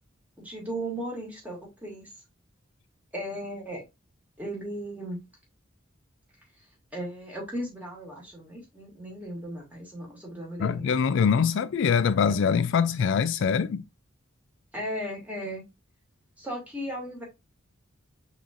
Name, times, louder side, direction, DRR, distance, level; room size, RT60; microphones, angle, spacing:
voice 1, 0.4-2.1 3.1-3.8 4.4-5.2 6.9-10.8 14.7-15.6 16.4-17.2, equal, 10° right, 2.1 m, -36 dB
voice 2, 10.6-13.8, left 6 dB, 65° left, 0.3 m, -23 dB
5.8 x 3.2 x 2.5 m
head